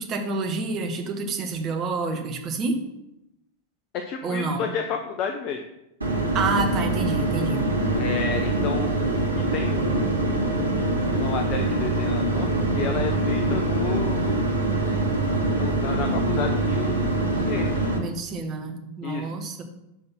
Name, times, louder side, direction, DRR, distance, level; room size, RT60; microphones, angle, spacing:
voice 1, 0.0-2.8 4.2-4.7 6.3-7.7 17.9-19.6, right 3 dB, 30° right, 4 dB, 1.2 m, -28 dB
voice 2, 3.9-5.7 7.9-10.6 11.1-14.4 15.5-17.9 19.0-19.3, left 6 dB, 40° left, 5 dB, 0.7 m, -32 dB
sound 1, 6.0-18.0, right 2 dB, 80° right, 1.3 m, -24 dB
5.8 x 5.5 x 5.9 m, 0.88 s
figure-of-eight pair, 90°, 0 cm